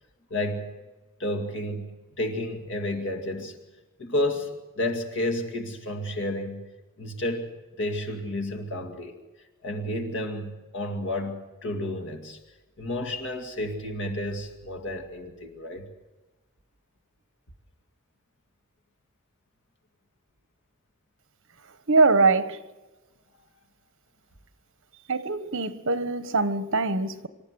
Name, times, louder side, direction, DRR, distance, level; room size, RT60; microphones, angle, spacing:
voice 1, 0.3-0.7 1.2-1.9 2.2-3.5 4.0-6.6 7.0-7.5 7.8-9.2 9.6-12.4 12.8-15.9, left 1 dB, 60° left, 2.3 m, -31 dB
voice 2, 21.9-22.6 25.1-27.3, right 3 dB, 60° right, 1.3 m, -23 dB
26.0 x 13.5 x 8.2 m
head